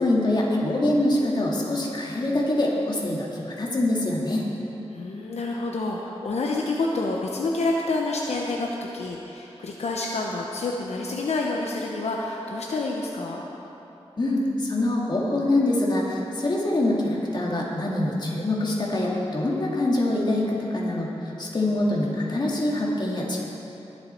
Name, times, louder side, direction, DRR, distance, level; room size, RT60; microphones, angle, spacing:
voice 1, 0.0-4.4 14.2-23.4, left 1 dB, 45° left, -3 dB, 2.2 m, -24 dB
voice 2, 4.9-13.4, left 2 dB, 85° left, -1 dB, 0.9 m, -28 dB
20.5 x 7.5 x 4.5 m, 3.0 s
wide cardioid pair, 100°, 11 cm